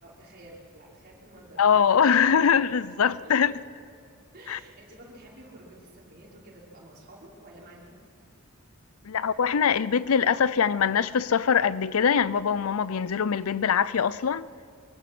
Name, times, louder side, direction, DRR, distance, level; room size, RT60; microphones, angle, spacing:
voice 1, 0.0-3.4 4.3-8.0, right 1 dB, 50° right, 5.3 m, -50 dB
voice 2, 1.6-3.5 4.5-4.6 9.1-14.5, left 7 dB, 80° left, 0.5 m, -23 dB
23.0 x 22.5 x 6.2 m
head